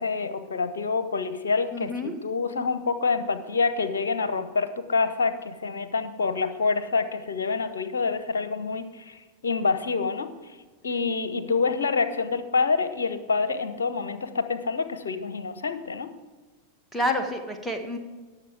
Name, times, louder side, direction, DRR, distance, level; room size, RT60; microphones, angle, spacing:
voice 1, 0.0-10.3 10.8-16.1, left 4 dB, 65° left, 11 dB, 0.9 m, -27 dB
voice 2, 1.7-2.1 16.9-18.0, left 1 dB, 5° left, 4 dB, 1.5 m, -28 dB
18.0 x 7.1 x 3.4 m, 1.3 s
figure-of-eight pair, 90°, 0 cm